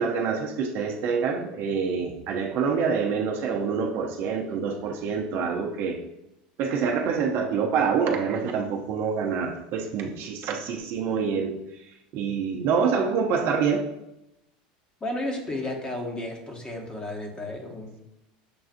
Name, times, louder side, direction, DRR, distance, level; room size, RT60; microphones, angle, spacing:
voice 1, 0.0-6.0 6.6-11.6 12.1-13.9, right 6 dB, 55° right, 2 dB, 0.6 m, -26 dB
voice 2, 15.0-18.0, left 1 dB, 20° left, 1 dB, 1.0 m, -33 dB
6.8 x 2.4 x 2.5 m, 0.89 s
hypercardioid pair, 100°, 4 cm